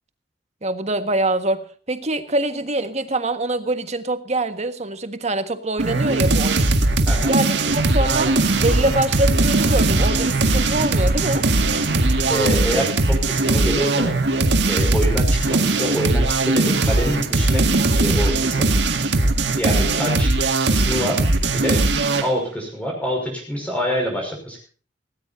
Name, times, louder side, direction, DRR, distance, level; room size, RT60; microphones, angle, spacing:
voice 1, 0.6-6.7 7.2-8.3 8.6-11.5, right 2 dB, 40° right, 9 dB, 1.6 m, -24 dB
sound 1, 5.8-22.3, right 2 dB, 85° right, 1.9 m, -19 dB
voice 2, 7.1-7.4 12.3-14.2 14.7-18.7 19.6-20.3 20.7-21.2 21.5-21.8 22.2-24.6, equal, 10° left, 0 dB, 5.7 m, -26 dB
sound 2, 7.7-12.7, right 1 dB, 60° right, 4.2 m, -31 dB
18.5 x 18.0 x 2.7 m, 0.39 s
head